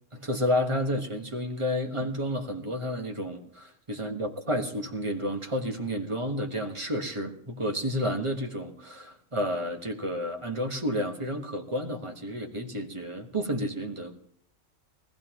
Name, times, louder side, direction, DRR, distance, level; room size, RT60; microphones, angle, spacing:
voice 1, 0.1-14.2, equal, 25° right, 4 dB, 1.3 m, -31 dB
21.5 x 15.0 x 3.0 m, 0.68 s
omnidirectional pair, 1.4 m